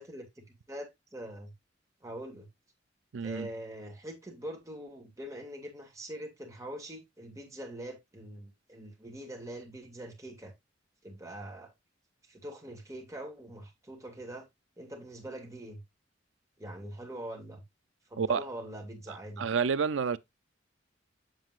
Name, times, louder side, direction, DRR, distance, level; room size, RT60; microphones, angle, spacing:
voice 1, 0.0-1.5 2.0-2.5 3.2-10.5 11.0-11.7 12.3-14.5 14.8-15.8 16.6-17.6 18.1-19.5, right 1 dB, 15° right, 2.1 m, -43 dB
voice 2, 3.1-3.5 18.2-18.5 19.1-20.2, right 6 dB, 80° right, 0.5 m, -30 dB
7.7 x 7.3 x 2.4 m
head